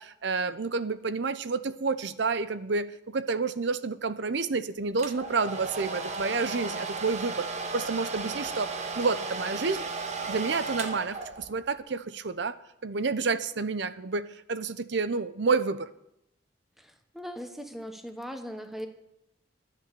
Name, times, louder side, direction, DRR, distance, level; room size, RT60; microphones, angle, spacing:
voice 1, 0.0-7.5 7.7-8.7 9.0-9.8 10.3-12.6 12.8-15.9, right 4 dB, 70° right, 14 dB, 0.7 m, -29 dB
Domestic sounds home sounds, 5.0-11.7, right 3 dB, 40° right, 1.2 m, -35 dB
voice 2, 17.1-18.9, equal, ahead, 6 dB, 1.2 m, -38 dB
10.5 x 10.5 x 6.8 m, 0.82 s
head